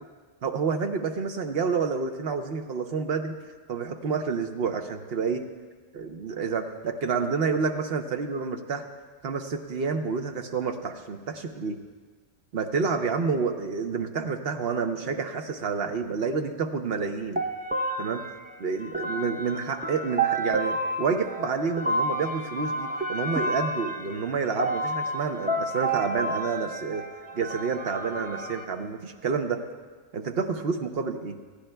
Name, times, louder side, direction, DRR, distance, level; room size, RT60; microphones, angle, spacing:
voice 1, 0.4-3.4 3.7-5.4 5.9-8.8 9.2-11.8 12.5-17.4 18.0-18.2 18.6-27.0 27.3-29.6 30.1-31.4, right 5 dB, 55° right, 5 dB, 0.9 m, -29 dB
sound 1, 17.4-28.6, right 2 dB, 10° right, 0.5 m, -30 dB
29.5 x 10.0 x 2.2 m, 1.5 s
omnidirectional pair, 1.3 m